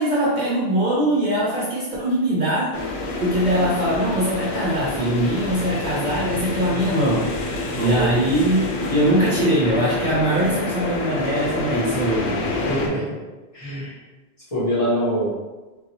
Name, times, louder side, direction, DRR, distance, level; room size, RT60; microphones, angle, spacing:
voice 1, 0.0-2.7 3.2-7.3 7.8-12.4, right 1 dB, 55° right, -6 dB, 0.6 m, -21 dB
sound 1, 2.7-12.9, left 2 dB, 85° left, 0.8 m, -28 dB
voice 2, 7.7-8.2 12.6-13.1 13.5-14.0 14.5-15.3, equal, 30° left, -12 dB, 1.6 m, -24 dB
3.8 x 2.2 x 2.8 m, 1.2 s
omnidirectional pair, 1.1 m